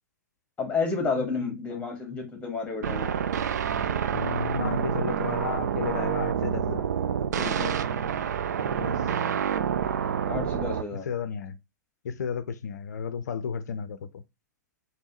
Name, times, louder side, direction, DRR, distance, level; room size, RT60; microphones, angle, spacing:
voice 1, 0.6-3.1 7.3-7.8 10.2-11.1, left 4 dB, 10° left, 1.7 m, -31 dB
voice 2, 1.2-1.8 4.0-6.9 8.8-9.0 10.9-11.6 12.0-14.2, left 6 dB, 65° left, 0.5 m, -33 dB
sound 1, 2.8-10.8, right 8 dB, 65° right, 0.4 m, -28 dB
5.3 x 2.7 x 3.1 m
figure-of-eight pair, 105°, 10 cm